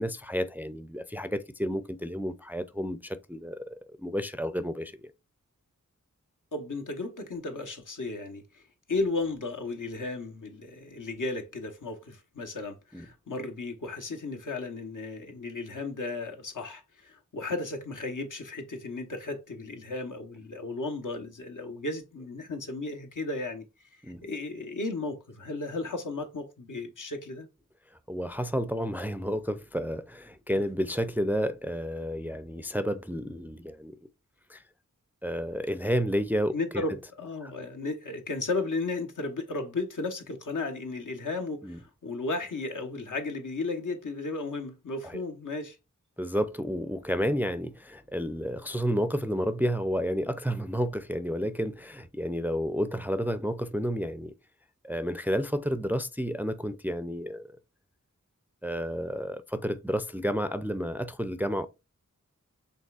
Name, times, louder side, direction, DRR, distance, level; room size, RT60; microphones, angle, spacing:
voice 1, 0.0-5.1 12.9-13.1 24.0-24.2 28.1-34.0 34.5-34.6 35.2-36.8 37.4-37.5 41.6-41.8 45.0-45.2 46.2-54.3 54.8-57.5 58.6-61.7, equal, 5° right, 0.4 m, -31 dB
voice 2, 6.5-8.6 8.9-23.6 23.9-27.5 30.5-30.6 36.5-45.8, left 3 dB, 70° left, 1.0 m, -34 dB
5.2 x 3.3 x 2.4 m
wide cardioid pair, 45°, 32 cm